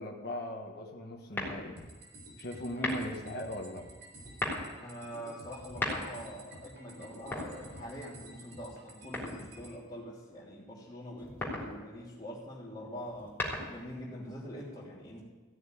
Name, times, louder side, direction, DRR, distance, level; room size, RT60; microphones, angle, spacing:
voice 1, 0.0-1.8 2.4-3.9, equal, 50° left, 0 dB, 1.5 m, -39 dB
sound 1, 1.3-1.9 2.7-3.3 4.2-4.7 5.6-6.3 7.2-8.1 9.1-9.7 11.2-11.8 13.1-13.9, left 1 dB, 10° left, 3.5 m, -36 dB
sound 2, 1.8-9.8, right 1 dB, 60° right, 3.8 m, -52 dB
voice 2, 4.8-13.4 13.7-15.2, equal, 25° left, -9 dB, 3.0 m, -44 dB
15.5 x 6.8 x 9.3 m, 1.3 s
head